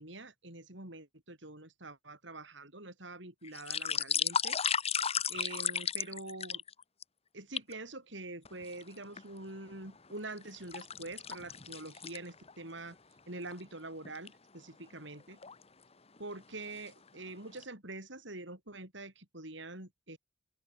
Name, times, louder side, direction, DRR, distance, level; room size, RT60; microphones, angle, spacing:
voice 1, 0.0-4.6 5.3-6.6 7.3-13.0 13.3-15.4 16.2-20.2, right 2 dB, 65° right, 7.4 m, -45 dB
sound 1, 3.4-7.0 7.5-7.7 8.4-9.2 9.7-12.6 12.9-13.0 13.5-13.6 14.0-14.3 15.1-15.6 16.2-16.4 16.7-17.3 17.6-17.7, left 7 dB, 30° left, 1.9 m, -34 dB
open air
head